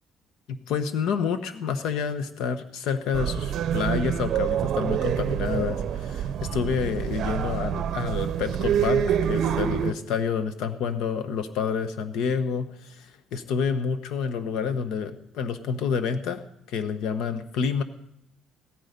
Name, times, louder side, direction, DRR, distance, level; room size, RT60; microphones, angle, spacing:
voice 1, 0.5-16.4 16.7-17.8, left 6 dB, 75° left, 9 dB, 1.1 m, -28 dB
sound 1, 3.1-9.9, right 9 dB, 50° right, 0.8 m, -26 dB
17.0 x 14.0 x 5.3 m, 0.76 s
cardioid pair, 165°, 0 cm